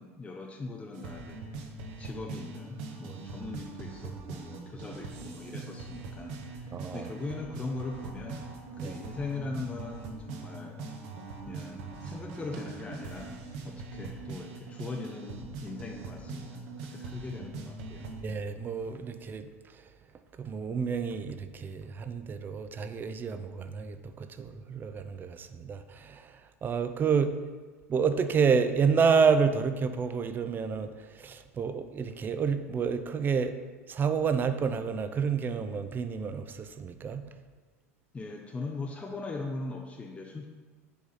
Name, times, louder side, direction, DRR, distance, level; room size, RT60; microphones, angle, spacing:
voice 1, 0.0-1.4 2.0-10.8 11.5-18.1 38.1-40.5, left 3 dB, 15° left, 0.6 m, -40 dB
sound 1, 0.9-18.3, right 4 dB, 50° right, 1.1 m, -42 dB
voice 2, 6.7-7.1 8.8-8.9 18.2-19.9 20.4-27.4 27.9-33.6 33.9-37.2, right 6 dB, 25° right, 0.6 m, -29 dB
6.9 x 4.8 x 5.5 m
figure-of-eight pair, 80°, 8 cm